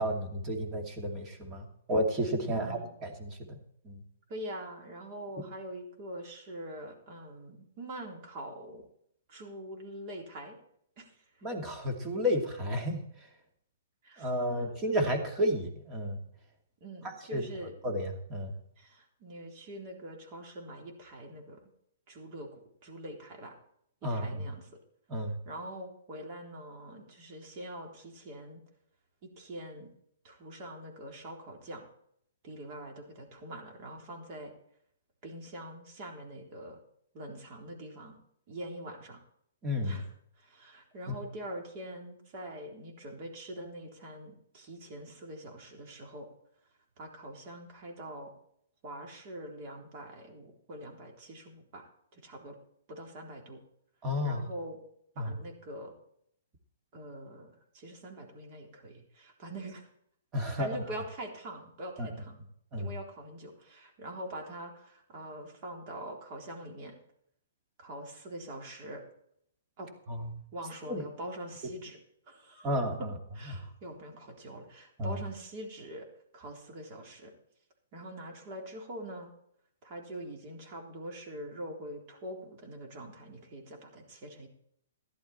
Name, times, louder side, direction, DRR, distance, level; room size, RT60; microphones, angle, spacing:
voice 1, 0.0-3.6 3.8-4.0 11.4-13.0 14.2-16.2 17.3-17.5 17.8-18.5 24.0-24.4 25.1-25.4 39.6-40.0 54.0-54.4 55.2-55.3 60.3-60.8 62.0-62.1 62.7-62.9 70.1-70.3 70.9-71.0 72.6-73.1 75.0-75.2, equal, 25° right, 2 dB, 2.6 m, -32 dB
voice 2, 2.4-2.9 4.3-8.9 9.3-10.6 11.0-11.1 14.0-14.7 16.8-17.7 18.8-21.6 22.1-22.5 22.8-23.5 24.1-24.7 25.4-28.6 29.2-29.9 30.2-31.8 32.4-34.5 35.2-36.8 37.1-38.2 38.5-39.2 39.8-40.1 40.4-46.3 47.0-48.3 48.8-52.6 52.9-53.6 54.2-54.8 55.2-55.9 56.9-59.9 60.6-62.5 62.8-67.0 67.8-69.0 69.8-69.9 70.5-72.0 72.3-72.7 73.0-73.1 73.3-76.1 76.3-77.3 77.9-79.3 79.8-84.5, right 1 dB, 40° right, 1 dB, 3.8 m, -44 dB
14.0 x 11.5 x 4.4 m, 0.69 s
hypercardioid pair, 140°, 0 cm